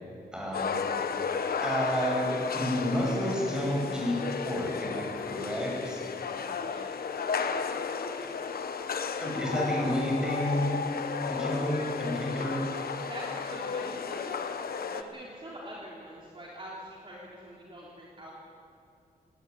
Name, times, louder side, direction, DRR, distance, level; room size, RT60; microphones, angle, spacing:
voice 1, 0.3-0.9 1.6-6.0 8.2-8.3 9.2-10.7 11.3-12.7, equal, 5° right, -3 dB, 7.9 m, -30 dB
sound 1, 0.5-15.0, left 5 dB, 75° left, 1.1 m, -33 dB
voice 2, 6.2-7.0 7.4-7.9 13.0-14.4 14.8-18.3, equal, 35° right, -5 dB, 3.9 m, -45 dB
19.0 x 17.0 x 9.9 m, 2.4 s
wide cardioid pair, 125°, 15 cm